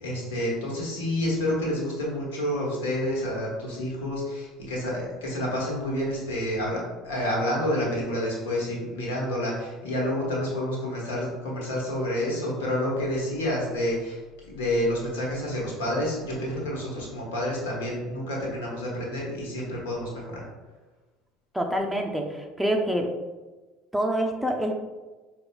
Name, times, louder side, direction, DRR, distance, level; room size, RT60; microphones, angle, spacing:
voice 1, 0.0-14.2 14.4-20.4, left 1 dB, 90° left, -3 dB, 1.1 m, -29 dB
voice 2, 21.5-23.1 23.9-24.7, right 1 dB, ahead, 2 dB, 0.5 m, -26 dB
5.1 x 2.3 x 2.2 m, 1.2 s
hypercardioid pair, 80°, 0 cm